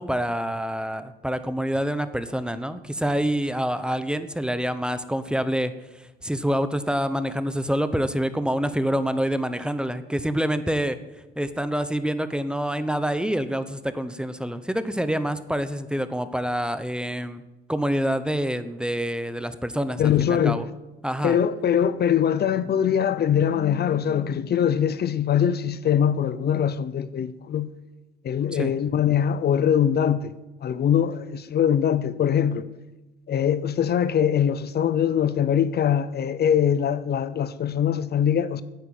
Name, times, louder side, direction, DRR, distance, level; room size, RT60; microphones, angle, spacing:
voice 1, 0.0-11.0 11.4-17.4 17.7-20.7 21.0-21.4 28.5-28.7, equal, 5° right, 0.9 m, -27 dB
voice 2, 20.0-20.6 21.2-27.7 28.2-30.3 30.6-32.7 33.3-38.6, left 9 dB, 55° left, 0.7 m, -22 dB
9.4 x 9.4 x 8.9 m
cardioid pair, 90°, 20 cm